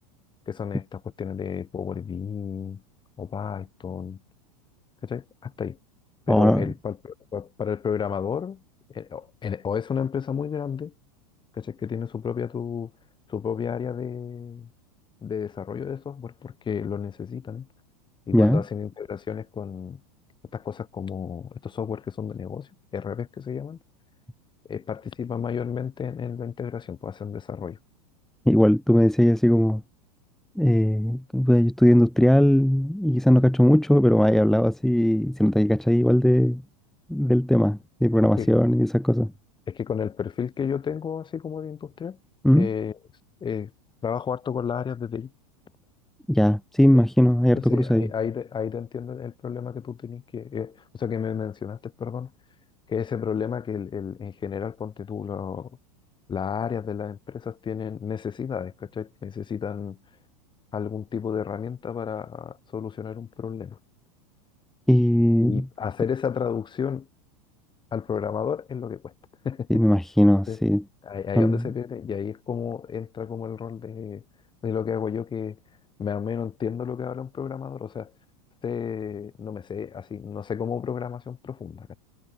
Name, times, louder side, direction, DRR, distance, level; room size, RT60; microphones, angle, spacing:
voice 1, 0.5-2.8 3.2-4.2 5.0-5.8 6.3-8.6 8.9-10.9 11.5-12.9 13.3-14.7 15.2-17.7 18.3-20.0 20.5-23.8 24.7-27.8 38.4-38.5 39.7-42.2 42.6-43.0 43.4-43.7 44.0-45.3 46.9-47.0 47.5-52.3 52.9-55.8 56.3-60.0 60.7-63.8 65.4-67.1 67.9-69.1 69.4-69.8 70.5-70.6 71.0-74.2 74.6-75.6 76.0-78.1 78.6-82.0, left 7 dB, 25° left, 6.6 m, -32 dB
voice 2, 6.3-6.7 18.3-18.6 28.5-29.8 30.6-36.6 37.1-39.3 42.4-42.7 46.3-48.1 64.9-65.6 69.7-70.8 71.4-71.6, equal, ahead, 1.9 m, -19 dB
hypercardioid pair, 105°, 19 cm